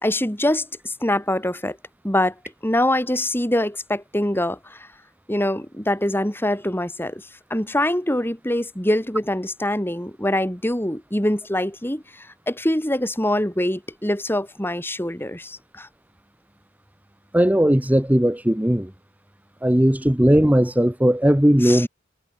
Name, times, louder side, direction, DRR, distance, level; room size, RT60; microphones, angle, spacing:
voice 1, 0.0-1.8 2.0-2.3 2.6-4.9 5.3-7.2 7.5-15.9 21.6-21.9, left 1 dB, 10° left, 3.9 m, -24 dB
voice 2, 17.3-18.9 19.6-21.9, equal, 10° right, 1.1 m, -17 dB
head